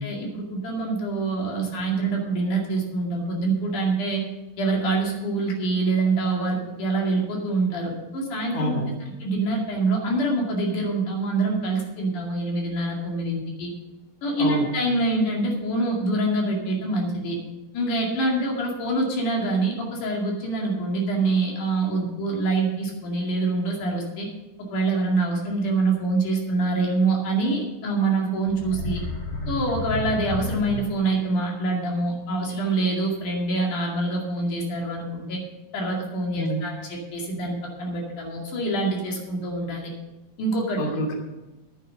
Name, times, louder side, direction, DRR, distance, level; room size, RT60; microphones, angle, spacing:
voice 1, 0.0-4.2 4.6-8.8 9.2-13.7 14.2-17.4 17.7-24.3 24.7-29.0 29.5-35.4 35.7-39.9 40.4-40.8, right 2 dB, 75° left, -1 dB, 3.8 m, -25 dB
voice 2, 8.5-9.1 14.4-14.7 36.3-36.7 40.8-41.1, right 1 dB, 30° left, 0 dB, 2.5 m, -28 dB
sound 1, 28.5-31.3, left 1 dB, 50° left, 5.4 m, -31 dB
10.5 x 9.2 x 6.5 m, 1.1 s
omnidirectional pair, 3.6 m